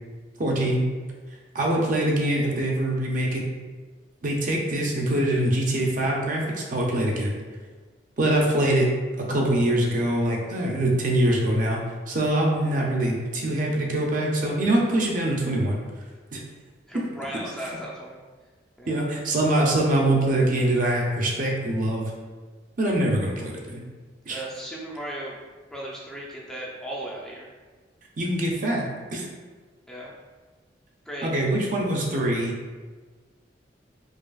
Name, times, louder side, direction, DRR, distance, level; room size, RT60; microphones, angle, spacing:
voice 1, 0.4-0.9 1.5-3.4 4.2-7.3 8.2-8.9 9.2-11.8 12.1-15.8 16.3-16.4 16.9-17.0 18.9-22.1 22.8-23.8 24.3-24.4 28.2-28.9 29.1-29.2 31.2-32.5, right 1 dB, 45° right, -1 dB, 0.6 m, -23 dB
voice 2, 16.9-18.2 18.8-19.0 24.3-25.4 25.7-27.5 29.9-30.1 31.1-31.3, right 1 dB, 5° left, -5 dB, 0.5 m, -36 dB
4.9 x 2.3 x 2.3 m, 1.4 s
head